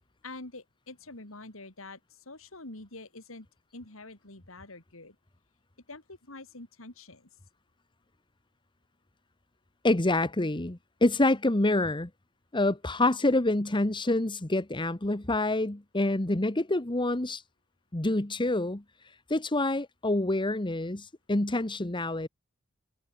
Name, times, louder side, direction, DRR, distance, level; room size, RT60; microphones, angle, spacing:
voice 1, 0.2-3.5 3.7-5.2 5.9-7.3, left 2 dB, 75° left, 3.6 m, -46 dB
voice 2, 9.8-12.1 12.5-17.4 17.9-18.8 19.3-22.3, left 2 dB, 25° left, 1.3 m, -27 dB
head